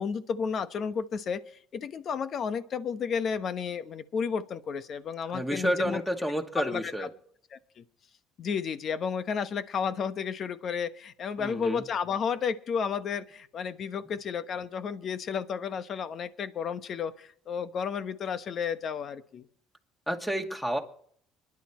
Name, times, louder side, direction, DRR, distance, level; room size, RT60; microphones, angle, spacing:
voice 1, 0.0-6.0 6.5-7.1 7.5-7.8 8.4-19.5, left 6 dB, 50° left, 11 dB, 1.1 m, -32 dB
voice 2, 5.3-7.1 11.4-11.8 20.1-20.8, equal, 5° left, 4 dB, 2.1 m, -30 dB
25.0 x 11.0 x 3.1 m, 0.62 s
cardioid pair, 95°, 0 cm